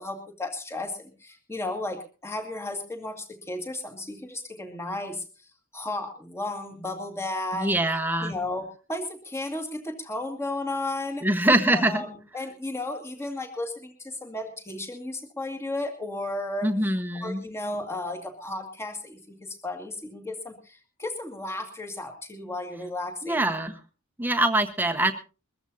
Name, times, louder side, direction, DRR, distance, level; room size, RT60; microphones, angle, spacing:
voice 1, 0.0-5.5 5.7-11.3 11.7-16.7 17.2-23.5, left 2 dB, 10° left, 3 dB, 2.1 m, -34 dB
voice 2, 7.5-8.3 11.2-12.0 16.6-17.4 23.2-23.7 24.2-25.1, right 1 dB, 10° right, 5 dB, 1.2 m, -23 dB
22.5 x 14.0 x 2.8 m, 0.33 s
head